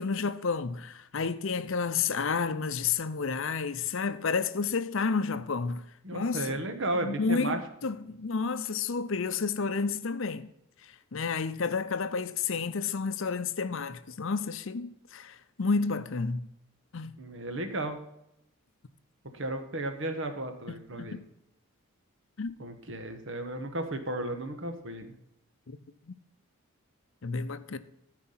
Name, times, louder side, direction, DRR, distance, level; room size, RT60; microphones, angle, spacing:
voice 1, 0.0-5.9 6.1-6.6 6.9-10.5 10.8-16.5 16.9-17.2 20.9-21.3 22.4-22.5 25.7-25.8 26.1-26.2 27.2-27.8, left 5 dB, 60° left, 0.6 m, -31 dB
voice 2, 6.0-7.6 17.2-18.0 19.3-21.2 22.6-25.1, right 1 dB, 60° right, 1.4 m, -34 dB
13.5 x 4.9 x 5.6 m
head